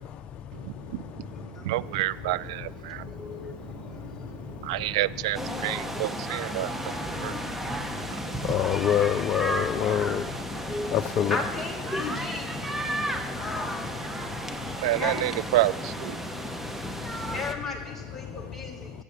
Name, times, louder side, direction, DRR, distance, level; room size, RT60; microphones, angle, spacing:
voice 1, 0.5-3.1 3.6-7.4 7.8-8.2 14.8-16.2, right 17 dB, 75° right, 0.3 m, -30 dB
voice 2, 1.3-1.7 1.9-2.0 2.8-5.0 5.6-8.2 10.7-12.5 13.3-14.0 14.9-15.8 16.2-16.4 17.2-19.0, left 3 dB, 10° left, 1.9 m, -38 dB
voice 3, 4.0-4.7 7.2-7.3 7.6-7.7 8.0-10.6 10.9-11.4 12.9-13.3 14.3-14.6 16.8-16.9 17.2-17.3, left 10 dB, 40° left, 0.5 m, -28 dB
sound 1, 5.3-17.5, right 1 dB, 5° right, 0.9 m, -33 dB
14.5 x 7.5 x 6.3 m
supercardioid pair, 130°, 3 cm